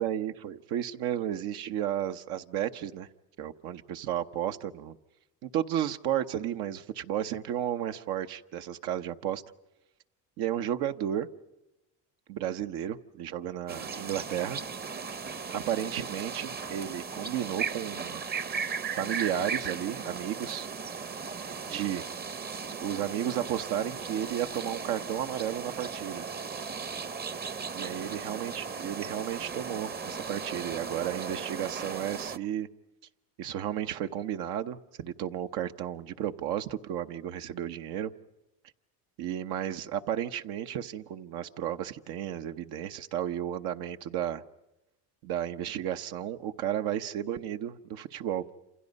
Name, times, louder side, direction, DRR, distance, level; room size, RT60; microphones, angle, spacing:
voice 1, 0.0-3.1 3.4-5.0 5.4-9.4 10.4-11.3 12.3-14.6 15.5-18.2 19.0-20.7 21.7-22.1 22.8-26.3 27.7-32.7 33.4-38.1 39.2-44.4 45.2-48.5, right 10 dB, 75° right, 7 dB, 1.1 m, -33 dB
sound 1, 13.7-32.4, right 5 dB, 25° right, 0.8 m, -37 dB
27.5 x 27.5 x 5.4 m, 0.95 s
cardioid pair, 105°, 38 cm